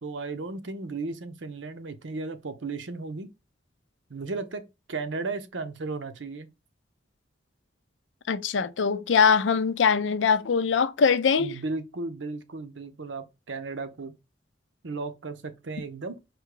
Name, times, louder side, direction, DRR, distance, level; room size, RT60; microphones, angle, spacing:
voice 1, 0.0-3.3 4.1-4.6 4.9-6.5 11.4-14.1 14.8-16.2, right 3 dB, 85° right, 0.8 m, -35 dB
voice 2, 8.3-11.5, left 6 dB, 90° left, 0.5 m, -22 dB
4.8 x 2.3 x 4.7 m
head